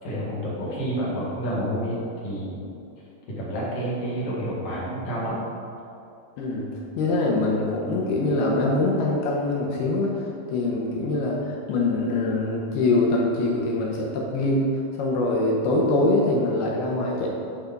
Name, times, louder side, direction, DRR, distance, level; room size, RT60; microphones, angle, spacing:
voice 1, 0.0-2.0 2.2-2.7 3.4-5.4, right 1 dB, 50° left, -7 dB, 2.8 m, -29 dB
voice 2, 6.4-14.7 15.0-17.3, left 2 dB, 75° left, -2 dB, 2.6 m, -24 dB
10.5 x 4.3 x 5.2 m, 2.6 s
omnidirectional pair, 5.1 m